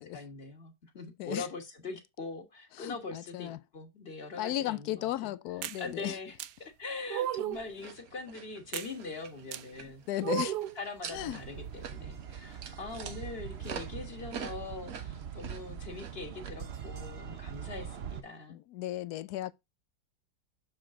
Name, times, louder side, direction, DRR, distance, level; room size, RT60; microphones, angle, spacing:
voice 1, 0.0-5.3 5.6-10.0 10.8-18.6, left 3 dB, 40° left, 1.9 m, -42 dB
voice 2, 2.8-3.6 4.4-6.1 9.8-10.5 11.1-11.4 18.5-19.5, left 14 dB, 75° left, 1.1 m, -35 dB
sound 1, 5.6-5.8 6.4-6.5 7.1-7.7 8.7-8.9 9.5-9.6 10.2-10.8, right 12 dB, 80° right, 1.2 m, -33 dB
sound 2, 7.5-16.5, right 7 dB, 65° right, 1.4 m, -47 dB
sound 3, 11.1-18.2, right 8 dB, 50° right, 0.9 m, -42 dB
6.9 x 5.6 x 3.6 m
omnidirectional pair, 1.7 m